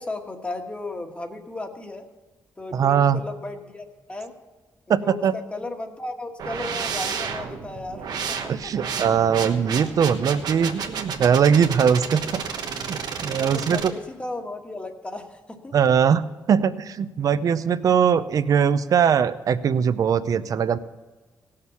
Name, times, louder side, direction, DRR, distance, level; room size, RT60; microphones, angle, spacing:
voice 1, 0.0-2.1 2.6-4.3 4.9-8.4 8.6-8.7 9.8-9.9 13.2-15.8, left 2 dB, 15° left, 5 dB, 1.4 m, -35 dB
voice 2, 2.7-3.2 4.9-5.3 8.5-12.4 12.9-13.8 15.7-16.2 16.5-20.8, right 7 dB, 60° right, 13 dB, 0.6 m, -21 dB
sound 1, 6.4-13.9, right 6 dB, 80° right, 1.2 m, -31 dB
17.5 x 6.7 x 7.0 m, 1.2 s
wide cardioid pair, 130°, 7 cm